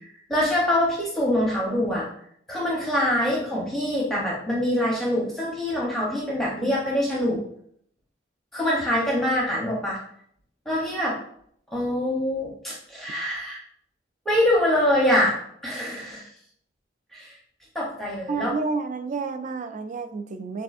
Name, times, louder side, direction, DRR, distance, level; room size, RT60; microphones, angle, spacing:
voice 1, 0.3-2.1 2.5-7.4 8.5-10.0 10.7-11.2 11.7-13.6 14.3-15.3 15.6-16.3 17.1-17.3 17.7-18.5, left 1 dB, ahead, -5 dB, 0.7 m, -24 dB
voice 2, 18.3-20.6, right 4 dB, 40° right, 9 dB, 0.3 m, -30 dB
6.7 x 2.6 x 2.4 m, 0.66 s
head